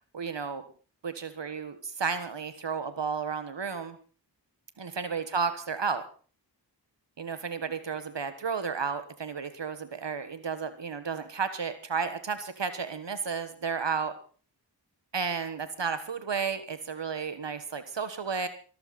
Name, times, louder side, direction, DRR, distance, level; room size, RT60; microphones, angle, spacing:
voice 1, 0.1-0.6 1.0-4.0 4.8-6.0 7.2-14.1 15.1-18.5, right 5 dB, 75° right, 11 dB, 1.5 m, -32 dB
21.0 x 14.0 x 4.2 m, 0.39 s
cardioid pair, 40°, 43 cm